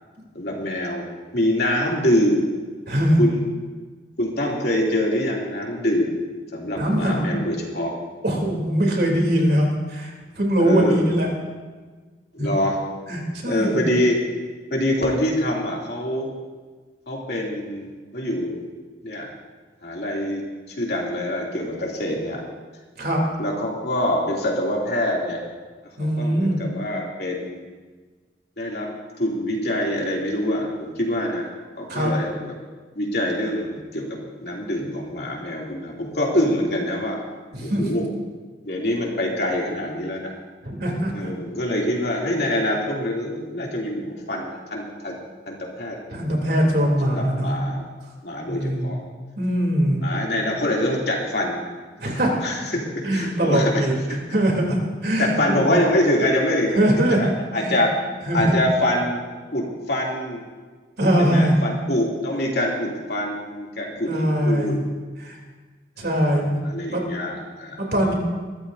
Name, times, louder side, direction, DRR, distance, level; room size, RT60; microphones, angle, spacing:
voice 1, 0.3-1.1 1.3-2.5 3.2-3.4 4.2-6.1 6.5-7.9 10.6-11.2 12.3-12.8 13.4-14.2 14.7-16.3 17.1-18.6 19.0-19.3 19.8-20.4 20.7-22.4 23.4-25.4 26.2-27.6 28.6-28.9 29.2-31.5 31.7-32.5 32.9-34.1 34.4-37.2 37.6-38.0 38.6-40.3 41.1-45.2 45.5-46.0 46.8-47.8 48.2-49.0 50.0-51.7 52.4-53.8 55.2-56.8 57.2-57.9 58.3-59.2 59.5-60.4 61.2-64.8 66.6-67.8, left 1 dB, 60° left, -2 dB, 3.0 m, -25 dB
voice 2, 2.9-3.2 6.7-7.4 8.2-11.3 12.4-12.5 13.1-13.9 23.0-23.2 26.0-26.6 31.9-32.1 37.5-37.9 40.6-41.3 46.1-47.6 48.5-48.9 49.4-50.0 52.0-52.3 53.0-54.0 54.3-55.7 56.7-57.3 57.6-57.8 58.3-58.6 61.0-61.6 64.1-64.8 65.2-65.4 66.0-66.6 66.9-67.0 67.8-68.1, right 1 dB, 60° right, -1 dB, 3.4 m, -21 dB
22.0 x 14.0 x 2.8 m, 1.4 s
head